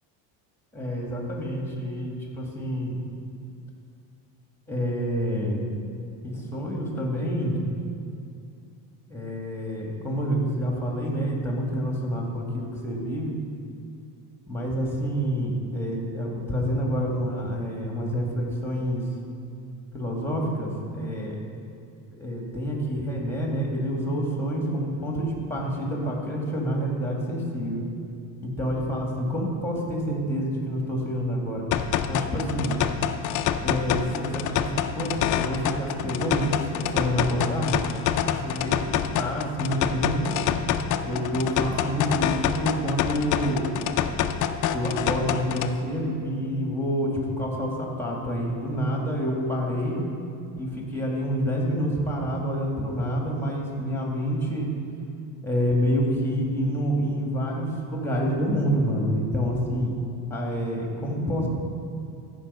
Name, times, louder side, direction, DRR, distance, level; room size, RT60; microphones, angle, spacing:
voice 1, 0.7-3.0 4.7-5.6 6.2-7.6 9.1-13.3 14.5-19.0 19.9-21.4 22.2-27.8 28.4-31.7 32.1-32.7 33.6-37.8 38.3-40.4 41.0-43.7 44.7-50.0 50.6-54.7 55.4-59.9 60.3-61.5, equal, 5° left, -1 dB, 1.9 m, -28 dB
sound 1, 31.7-45.7, left 9 dB, 45° left, 0.5 m, -27 dB
13.5 x 5.3 x 5.5 m, 2.5 s
cardioid pair, 120°, 46 cm